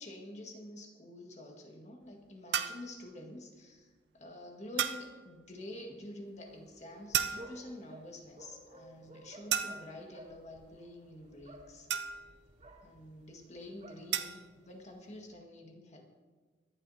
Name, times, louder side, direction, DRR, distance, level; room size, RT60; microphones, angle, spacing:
voice 1, 0.0-11.9 12.8-16.0, left 1 dB, 40° left, 2 dB, 1.7 m, -48 dB
sound 1, 2.5-2.9 4.8-5.1 7.1-7.7 9.5-10.0 11.9-12.4 14.1-14.5, right 9 dB, 70° right, 0.6 m, -33 dB
sound 2, 6.4-15.3, right 1 dB, 40° right, 2.6 m, -56 dB
23.5 x 11.0 x 2.8 m, 1.4 s
head